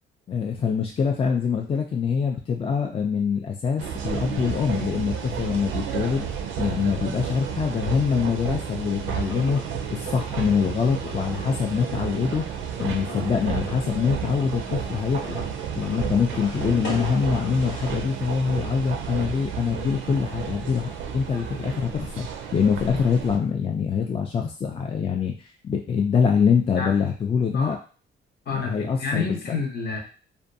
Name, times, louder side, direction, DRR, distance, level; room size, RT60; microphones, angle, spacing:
voice 1, 0.3-6.3 6.6-9.6 9.9-12.4 12.8-15.4 15.7-22.3 22.5-27.8 28.5-29.3, left 6 dB, 30° left, 2 dB, 0.3 m, -24 dB
sound 1, 3.8-23.4, right 7 dB, 75° right, 0.4 m, -32 dB
sound 2, 9.0-18.0, left 1 dB, 85° left, 1.1 m, -42 dB
voice 2, 28.5-30.0, left 4 dB, 55° left, 1 dB, 0.8 m, -29 dB
2.5 x 2.2 x 2.6 m, 0.37 s
cardioid pair, 90°, 20 cm